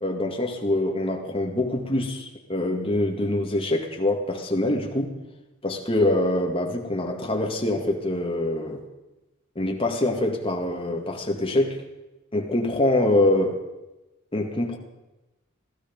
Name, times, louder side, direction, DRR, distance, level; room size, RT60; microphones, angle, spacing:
voice 1, 0.0-5.1 5.6-8.8 9.6-11.8 12.3-13.6 14.3-14.8, left 1 dB, 25° left, 2 dB, 2.0 m, -24 dB
16.0 x 15.0 x 5.3 m, 1.0 s
head